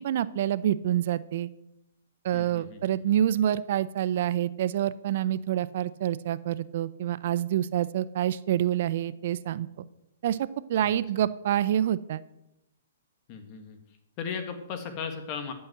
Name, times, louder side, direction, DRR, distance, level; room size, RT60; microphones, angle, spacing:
voice 1, 0.0-1.5 2.2-9.8 10.2-12.2, right 11 dB, 55° right, 17 dB, 0.5 m, -27 dB
voice 2, 2.3-3.2 10.8-10.9 11.1-11.2 13.3-15.5, left 6 dB, 40° left, 7 dB, 1.6 m, -37 dB
12.5 x 5.5 x 7.7 m, 0.87 s
hypercardioid pair, 125°, 0 cm